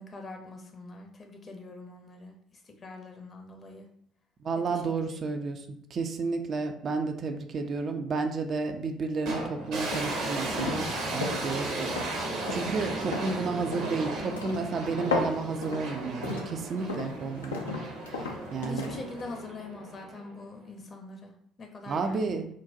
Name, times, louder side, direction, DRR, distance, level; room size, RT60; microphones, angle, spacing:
voice 1, 0.0-2.3 2.8-3.9 4.7-5.4 18.7-21.3 21.6-22.4, left 3 dB, 35° left, 3 dB, 0.7 m, -43 dB
voice 2, 4.4-5.7 5.9-17.8 18.1-19.0 21.8-22.5, right 4 dB, 45° right, 5 dB, 0.3 m, -32 dB
sound 1, 9.3-20.5, right 2 dB, 65° right, 0.8 m, -35 dB
sound 2, 9.9-19.4, left 3 dB, 85° left, 0.5 m, -36 dB
3.9 x 2.1 x 2.6 m, 0.68 s
figure-of-eight pair, 55°, 0 cm